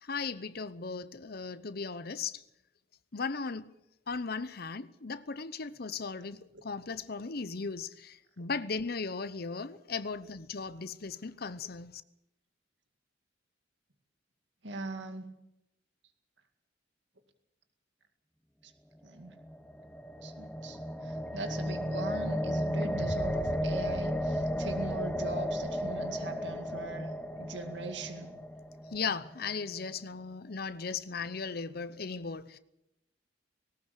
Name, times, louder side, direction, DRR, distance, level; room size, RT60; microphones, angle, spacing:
voice 1, 0.0-2.4 3.1-3.7 4.1-12.0 28.9-32.6, left 5 dB, 55° left, 0.8 m, -37 dB
voice 2, 14.6-15.2 18.6-18.7 19.0-19.4 20.2-27.1 27.4-28.4, right 2 dB, 75° right, 2.2 m, -41 dB
sound 1, 19.3-29.5, equal, 5° left, 1.1 m, -34 dB
sound 2, 22.8-27.2, equal, 55° right, 7.4 m, -43 dB
19.0 x 18.0 x 8.4 m
head